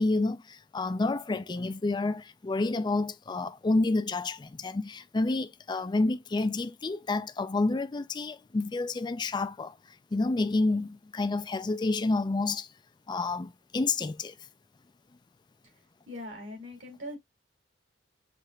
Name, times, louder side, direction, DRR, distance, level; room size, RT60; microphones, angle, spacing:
voice 1, 0.0-9.7 10.1-12.7 13.1-14.3, left 2 dB, 25° left, 0.4 m, -29 dB
voice 2, 16.1-17.2, left 1 dB, 70° right, 2.9 m, -41 dB
6.4 x 3.3 x 2.3 m
head